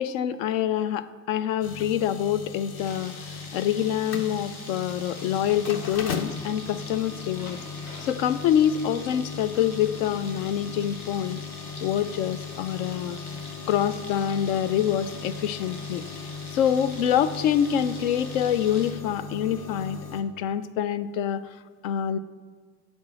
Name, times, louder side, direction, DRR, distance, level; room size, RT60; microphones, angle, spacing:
voice 1, 0.0-7.6 8.0-11.4 11.8-13.2 13.7-16.0 16.5-21.4 21.8-22.2, left 9 dB, 70° left, 15 dB, 0.5 m, -26 dB
sound 1, 1.6-20.2, left 5 dB, 35° left, 0.8 m, -38 dB
sound 2, 2.8-18.9, left 2 dB, 85° left, 1.2 m, -44 dB
7.2 x 4.3 x 6.2 m, 1.5 s
hypercardioid pair, 65°, 43 cm